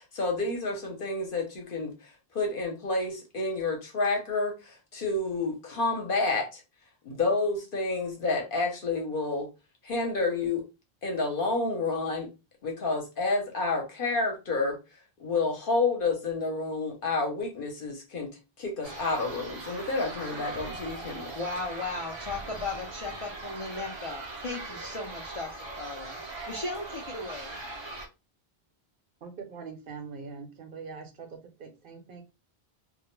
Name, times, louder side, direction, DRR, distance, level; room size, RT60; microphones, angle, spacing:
voice 1, 0.0-6.6 7.0-9.5 9.8-10.6 11.0-12.3 12.6-14.8 15.2-21.3, left 3 dB, 60° left, 0.9 m, -29 dB
sound 1, 18.8-28.1, right 2 dB, 35° right, 0.4 m, -40 dB
voice 2, 21.3-25.5 25.8-26.2 26.5-27.5, left 3 dB, 45° left, 0.4 m, -36 dB
voice 3, 29.2-32.2, right 5 dB, 65° right, 0.8 m, -43 dB
2.2 x 2.1 x 3.0 m
omnidirectional pair, 1.0 m